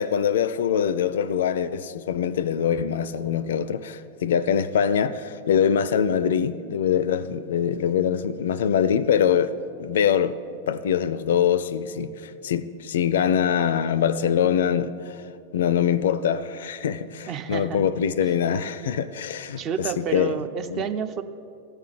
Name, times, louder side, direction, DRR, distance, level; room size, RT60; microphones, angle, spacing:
voice 1, 0.0-9.5 9.8-10.4 10.7-15.2 15.5-19.6 20.0-20.3 20.7-20.8, left 8 dB, 60° left, 0.4 m, -23 dB
voice 2, 17.3-17.8 18.2-18.3 19.6-21.2, right 7 dB, 35° right, 0.6 m, -30 dB
14.0 x 4.7 x 8.9 m
figure-of-eight pair, 90°, 0 cm